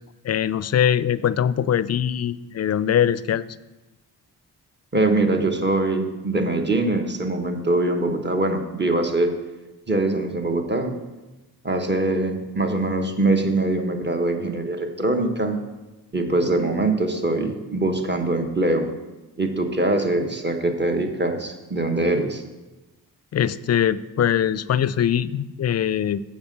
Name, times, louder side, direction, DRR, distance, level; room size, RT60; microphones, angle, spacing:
voice 1, 0.2-3.5 23.3-26.2, left 9 dB, 40° left, 18 dB, 0.4 m, -22 dB
voice 2, 4.9-9.3 9.9-10.9 11.6-15.6 16.1-18.9 19.4-22.4, right 2 dB, 25° right, 4 dB, 1.3 m, -23 dB
7.0 x 5.4 x 6.7 m, 1.1 s
cardioid pair, 50°, 39 cm